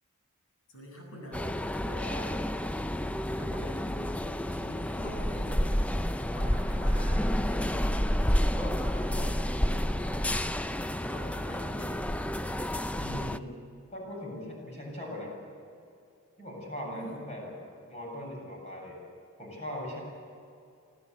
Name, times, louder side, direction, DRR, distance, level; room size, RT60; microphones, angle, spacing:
voice 1, 0.7-1.6 3.3-4.2 4.5-5.9 6.3-10.3 11.1-12.3 16.9-17.2, equal, 70° left, 0 dB, 7.9 m, -45 dB
sound 1, 1.3-13.4, equal, 5° left, 0.5 m, -30 dB
voice 2, 1.8-2.3 12.9-13.5 13.9-15.3 16.4-17.5 17.9-19.0 19.4-20.0, left 1 dB, 30° left, -1 dB, 7.6 m, -39 dB
27.0 x 14.5 x 8.2 m, 2.5 s
head